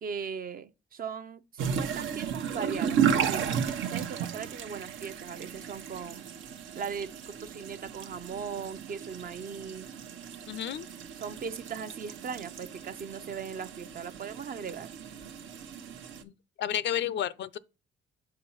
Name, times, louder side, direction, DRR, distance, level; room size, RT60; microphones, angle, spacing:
voice 1, 0.0-6.3 6.8-9.9 11.1-14.9, right 6 dB, 45° right, 0.7 m, -39 dB
sound 1, 1.6-16.2, right 8 dB, 80° right, 0.9 m, -34 dB
voice 2, 10.5-10.9 16.2-16.3 16.6-17.6, left 10 dB, 65° left, 0.5 m, -31 dB
5.6 x 4.6 x 5.5 m
cardioid pair, 90°, 20 cm